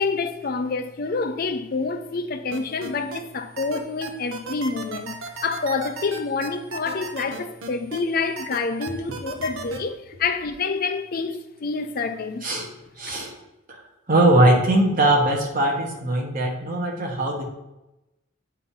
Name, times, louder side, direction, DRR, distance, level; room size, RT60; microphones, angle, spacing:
voice 1, 0.0-5.2 5.4-12.5 13.1-13.2, left 4 dB, 45° left, 0.5 m, -27 dB
sound 1, 2.5-3.2 3.6-8.0 8.4-9.8, right 3 dB, 75° right, 0.8 m, -34 dB
voice 2, 13.0-13.3 13.7-13.8 14.1-17.4, right 1 dB, 40° right, 1.2 m, -20 dB
8.0 x 2.7 x 5.5 m
head